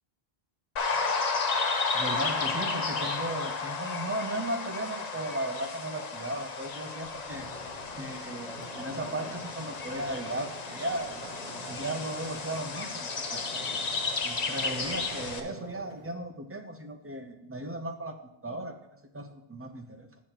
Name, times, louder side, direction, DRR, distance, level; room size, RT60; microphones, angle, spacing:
sound 1, 0.8-15.4, left 4 dB, 45° left, 0.7 m, -33 dB
voice 1, 1.9-7.5 8.0-11.1 11.7-13.5 14.2-20.1, right 1 dB, 15° right, 5 dB, 0.5 m, -36 dB
sound 2, 7.3-16.1, right 3 dB, 40° right, 1.5 m, -46 dB
10.5 x 8.3 x 2.9 m, 0.86 s
omnidirectional pair, 1.1 m